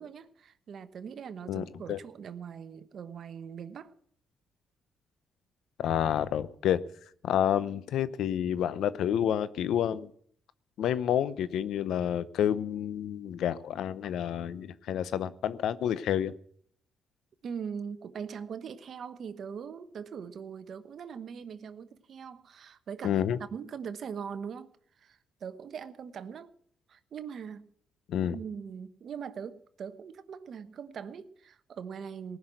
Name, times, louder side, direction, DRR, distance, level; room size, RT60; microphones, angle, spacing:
voice 1, 0.0-3.9 17.4-24.7 25.0-26.5 26.9-27.7 28.2-32.4, right 7 dB, 60° right, 1.0 m, -41 dB
voice 2, 1.5-2.0 5.8-6.8 7.2-10.1 10.8-16.3 23.0-23.4 28.1-28.4, left 10 dB, 75° left, 0.7 m, -29 dB
18.5 x 6.2 x 9.0 m
cardioid pair, 90°, 0 cm